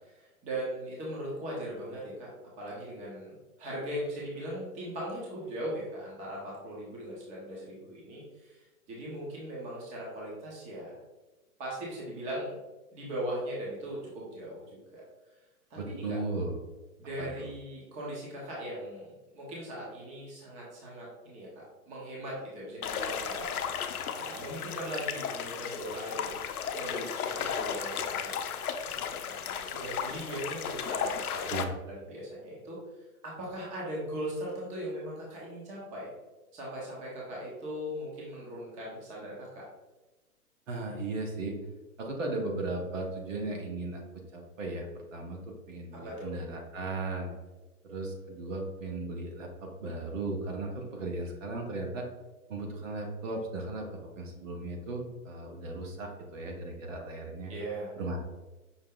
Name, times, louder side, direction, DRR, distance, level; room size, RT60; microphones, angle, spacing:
voice 1, 0.0-2.3 2.6-10.9 11.6-12.6 12.9-15.0 15.7-16.2 17.0-26.2 26.7-28.3 29.2-32.8 33.2-36.1 36.5-39.6 46.0-46.3 57.5-57.9, right 1 dB, 15° right, -4 dB, 0.8 m, -39 dB
voice 2, 15.7-16.5 17.2-17.5 31.5-31.7 40.7-41.6 42.0-47.3 47.8-52.1 52.5-53.9 54.2-57.5 58.0-58.2, right 2 dB, 60° right, 1 dB, 1.1 m, -36 dB
sound 1, 22.8-31.6, left 7 dB, 75° left, 0.6 m, -35 dB
5.6 x 2.1 x 3.7 m, 1.1 s
hypercardioid pair, 140°, 44 cm